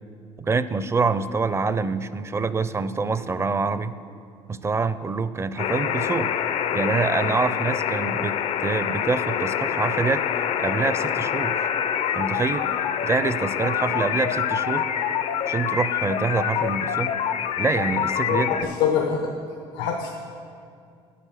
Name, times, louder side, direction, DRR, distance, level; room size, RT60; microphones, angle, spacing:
voice 1, 0.4-3.9 4.5-6.3 6.7-11.7 12.1-12.6 13.0-14.9 15.5-17.1 17.6-18.5, right 4 dB, 25° right, 14 dB, 0.5 m, -26 dB
sound 1, 5.6-18.6, left 9 dB, 65° left, 0.6 m, -26 dB
voice 2, 18.3-19.3 19.7-20.1, left 7 dB, 90° left, 3 dB, 0.9 m, -25 dB
9.0 x 8.5 x 7.2 m, 2.4 s
supercardioid pair, 95°, 12 cm